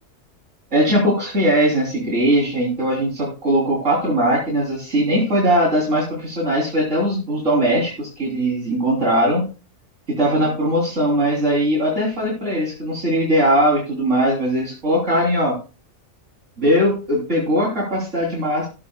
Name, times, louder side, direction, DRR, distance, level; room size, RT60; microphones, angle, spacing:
voice 1, 0.7-9.4 10.1-15.6 16.6-18.7, equal, 70° right, -4 dB, 3.6 m, -20 dB
19.5 x 8.6 x 2.2 m, 0.34 s
omnidirectional pair, 1.3 m